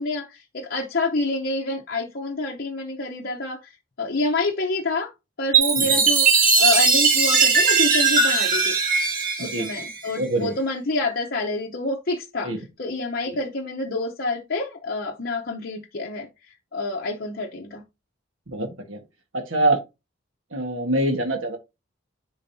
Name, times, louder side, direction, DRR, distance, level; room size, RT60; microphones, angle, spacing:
voice 1, 0.0-5.1 5.4-8.8 9.4-12.5 12.8-17.8, left 2 dB, 50° left, 0.8 m, -27 dB
Chime, 5.5-10.2, right 5 dB, 45° right, 1.7 m, -19 dB
voice 2, 10.2-10.5 12.4-12.6 18.5-19.0 19.3-19.8 20.5-21.6, right 1 dB, 75° right, 1.4 m, -24 dB
10.5 x 3.9 x 2.7 m
head